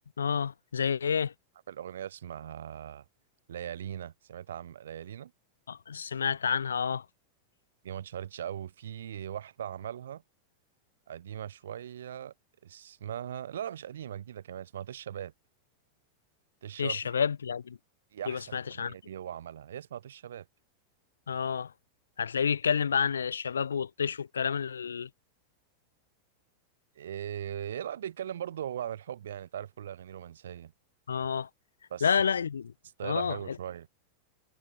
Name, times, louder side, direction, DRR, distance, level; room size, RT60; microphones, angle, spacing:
voice 1, 0.2-1.3 5.7-7.0 16.8-17.8 18.3-18.9 21.3-21.7 22.2-25.1 31.1-31.5 32.0-32.7 33.0-33.4, left 7 dB, 70° left, 3.1 m, -29 dB
voice 2, 1.7-3.0 3.5-5.3 7.8-10.2 11.1-12.3 12.6-15.3 16.6-17.0 18.1-20.5 27.0-30.7 31.9-32.1 33.0-33.9, right 10 dB, 65° right, 4.1 m, -39 dB
figure-of-eight pair, 90°, 0 cm